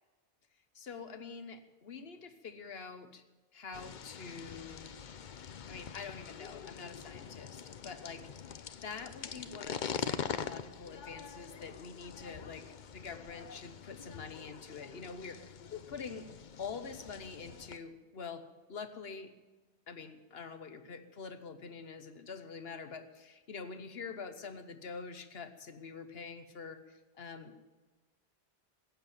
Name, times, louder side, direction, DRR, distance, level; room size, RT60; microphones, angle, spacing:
voice 1, 0.7-3.2 3.5-4.9 5.7-16.3 16.6-19.3 19.9-27.6, left 5 dB, 75° left, 10 dB, 1.3 m, -46 dB
sound 1, 3.7-17.8, left 7 dB, 55° left, 0.8 m, -44 dB
15.5 x 8.8 x 9.0 m, 1.2 s
omnidirectional pair, 1.0 m